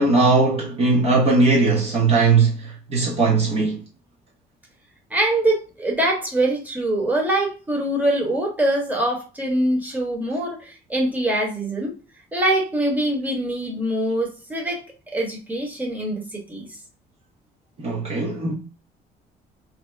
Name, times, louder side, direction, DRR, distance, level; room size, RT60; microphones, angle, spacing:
voice 1, 0.0-3.8 17.8-18.5, right 3 dB, 40° right, 0.8 m, -19 dB
voice 2, 5.1-11.9 12.3-14.8 15.1-16.7, right 1 dB, 10° right, 1.1 m, -23 dB
2.8 x 2.0 x 3.4 m
cardioid pair, 110°, 17 cm